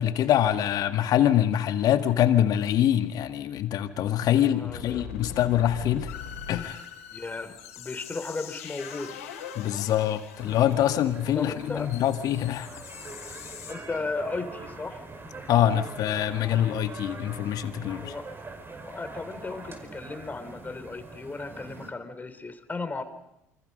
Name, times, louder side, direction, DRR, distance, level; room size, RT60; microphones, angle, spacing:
voice 1, 0.0-6.1 6.5-6.8 9.6-12.7 15.5-18.1, left 11 dB, 55° left, 9 dB, 1.9 m, -24 dB
sound 1, 3.9-4.0 4.4-4.5 4.7-13.7, left 6 dB, 80° left, 3.9 m, -42 dB
voice 2, 4.3-5.0 7.1-9.2 11.4-11.9 13.7-15.0 18.0-18.3 18.9-23.0, left 3 dB, 20° left, 9 dB, 3.4 m, -35 dB
sound 2, 10.4-21.9, right 3 dB, 30° right, 5.2 m, -43 dB
28.0 x 25.5 x 5.5 m, 0.88 s
hypercardioid pair, 65°, 8 cm